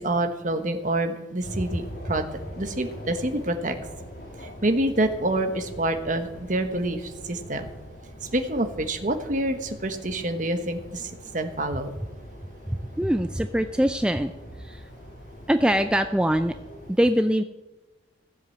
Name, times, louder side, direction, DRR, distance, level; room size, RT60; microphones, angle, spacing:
voice 1, 0.0-2.2 2.6-3.8 4.4-7.7 8.2-11.9, right 1 dB, 45° right, 7 dB, 1.2 m, -27 dB
sound 1, 1.4-16.9, equal, 55° left, 2.7 m, -43 dB
voice 2, 12.7-14.3 14.6-14.9 15.5-16.5 17.0-17.4, equal, 5° right, 8 dB, 0.3 m, -23 dB
16.0 x 7.8 x 7.9 m, 1.1 s
head